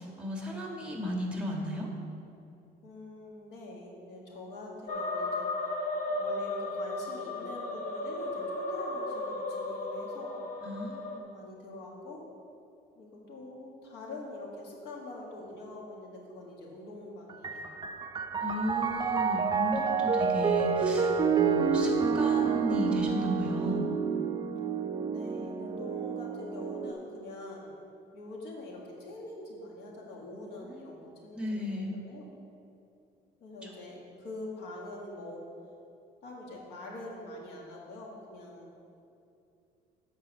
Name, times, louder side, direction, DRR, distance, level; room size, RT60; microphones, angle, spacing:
voice 1, 0.0-1.9 10.6-11.3 18.4-23.9 30.6-30.9 31.3-31.9, left 1 dB, 5° right, -1 dB, 1.6 m, -35 dB
voice 2, 2.8-5.7 6.2-10.3 11.0-12.2 13.0-17.7 25.1-27.7 28.1-32.3 33.4-35.4 36.2-38.7, left 2 dB, 80° left, -1 dB, 1.8 m, -44 dB
sound 1, 4.9-11.2, left 2 dB, 50° left, 0.9 m, -35 dB
Piano, 17.3-26.9, right 6 dB, 25° right, 0.5 m, -29 dB
8.0 x 4.6 x 6.6 m, 2.6 s
cardioid pair, 110°, 17 cm